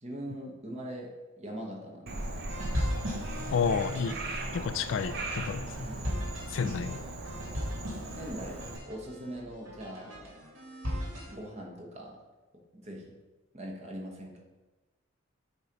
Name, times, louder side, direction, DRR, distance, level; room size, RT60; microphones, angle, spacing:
voice 1, 0.0-2.4 5.8-6.4 8.1-10.4 10.9-12.2 12.5-13.2 13.5-14.4, right 1 dB, 30° right, 0 dB, 1.1 m, -42 dB
Frog, 2.1-8.8, right 2 dB, 50° right, 0.7 m, -38 dB
sound 1, 2.5-11.3, equal, 70° right, 2.1 m, -38 dB
voice 2, 3.5-4.2 4.5-5.8 6.5-7.0, left 6 dB, 65° left, 12 dB, 0.3 m, -30 dB
7.9 x 2.9 x 5.2 m, 1.2 s
head